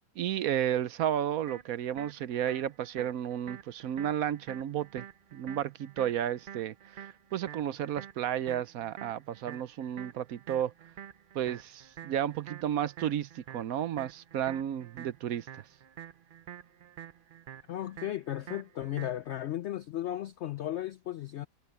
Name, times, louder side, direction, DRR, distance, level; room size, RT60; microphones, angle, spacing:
voice 1, 0.2-5.0 5.3-10.7 11.3-15.7, right 10 dB, 65° right, 1.0 m, -32 dB
sound 1, 1.5-19.5, right 9 dB, 80° right, 0.4 m, -48 dB
voice 2, 17.7-21.5, left 13 dB, 75° left, 0.6 m, -35 dB
omnidirectional pair, 1.7 m